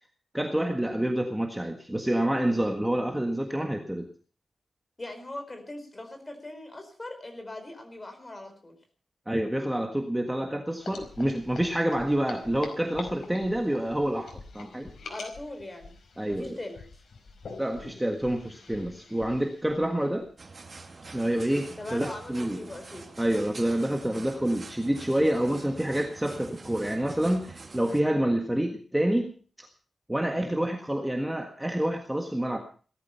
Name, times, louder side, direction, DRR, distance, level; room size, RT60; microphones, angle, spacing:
voice 1, 0.3-4.1 9.3-14.9 16.2-16.6 17.6-20.3 21.1-22.6 23.2-29.7 30.1-32.6, right 1 dB, 5° right, 3 dB, 1.6 m, -28 dB
voice 2, 5.0-8.8 15.1-16.0 16.3-16.9 21.7-23.1, left 2 dB, 20° left, 5 dB, 4.5 m, -40 dB
sound 1, 10.8-20.3, left 4 dB, 85° left, 4.9 m, -46 dB
sound 2, 20.4-28.0, right 3 dB, 35° right, 2.3 m, -46 dB
18.0 x 13.5 x 5.7 m, 0.41 s
wide cardioid pair, 175°, 0 cm